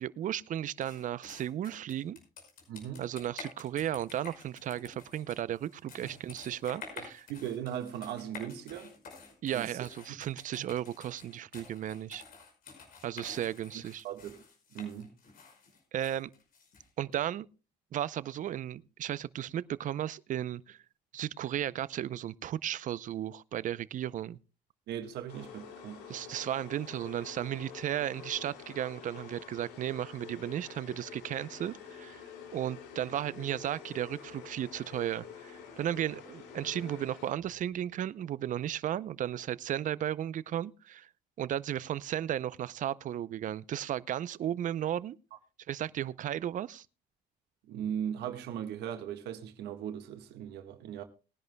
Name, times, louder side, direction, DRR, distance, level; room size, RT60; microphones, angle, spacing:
voice 1, 0.0-2.2 3.0-7.3 9.4-12.2 13.0-14.0 15.9-16.3 17.0-17.5 17.9-20.8 21.1-24.4 26.1-32.2 32.5-41.1 41.4-45.2 45.7-46.9, right 11 dB, 50° right, 0.5 m, -35 dB
sound 1, 0.8-17.2, left 5 dB, 60° left, 5.4 m, -50 dB
voice 2, 2.7-3.0 7.0-8.9 9.5-9.7 10.6-10.7 14.0-14.4 14.7-15.1 24.9-26.0 47.7-51.0, right 9 dB, 80° right, 1.5 m, -38 dB
sound 2, 25.3-37.7, left 7 dB, 80° left, 2.6 m, -48 dB
21.0 x 10.5 x 2.2 m
cardioid pair, 110°, 17 cm